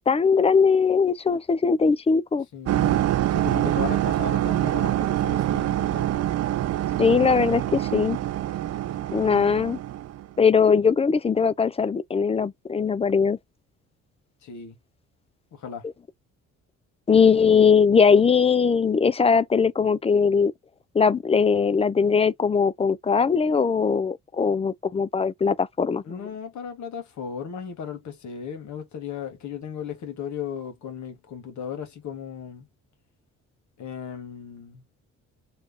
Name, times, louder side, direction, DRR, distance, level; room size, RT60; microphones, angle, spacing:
voice 1, 0.1-2.5 7.0-8.2 9.1-9.8 10.4-13.4 17.1-20.5 20.9-26.2, left 5 dB, 20° left, 0.3 m, -20 dB
voice 2, 2.5-6.1 14.4-14.8 15.5-15.8 26.0-32.7 33.8-34.8, left 7 dB, 70° left, 1.4 m, -36 dB
sound 1, 2.7-10.3, right 13 dB, 55° right, 0.4 m, -25 dB
3.2 x 2.4 x 3.6 m
cardioid pair, 90°, 30 cm